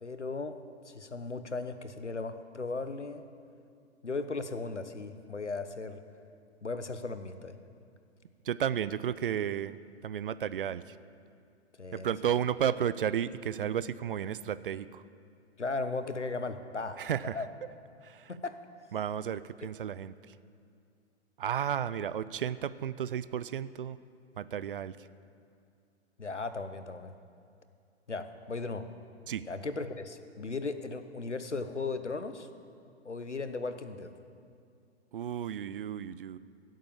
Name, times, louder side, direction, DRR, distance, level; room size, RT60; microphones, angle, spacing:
voice 1, 0.0-0.6 0.8-3.2 4.0-6.0 6.6-7.6 11.8-12.1 15.6-17.5 18.3-18.6 19.6-19.7 26.2-27.1 28.1-28.9 29.5-32.5 33.0-34.1, left 3 dB, 85° left, 10 dB, 1.0 m, -36 dB
voice 2, 8.5-9.8 10.0-10.8 11.9-15.0 17.0-17.4 18.1-18.2 18.9-20.1 21.4-24.0 24.4-24.9 29.3-29.4 35.1-36.4, right 9 dB, 50° right, 16 dB, 0.5 m, -32 dB
16.5 x 7.6 x 7.3 m, 2.4 s
figure-of-eight pair, 115°, 34 cm